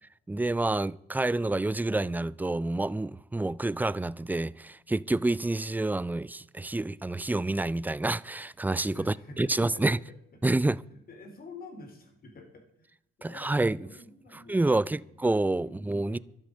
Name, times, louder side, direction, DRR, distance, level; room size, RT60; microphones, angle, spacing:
voice 1, 0.3-10.0 10.4-10.8 13.2-13.9 14.3-16.2, right 2 dB, 10° right, 0.4 m, -28 dB
voice 2, 8.9-10.2 10.9-12.9 13.2-15.1 15.6-16.2, left 2 dB, 50° left, 3.9 m, -49 dB
12.0 x 9.2 x 7.9 m
cardioid pair, 90°, 20 cm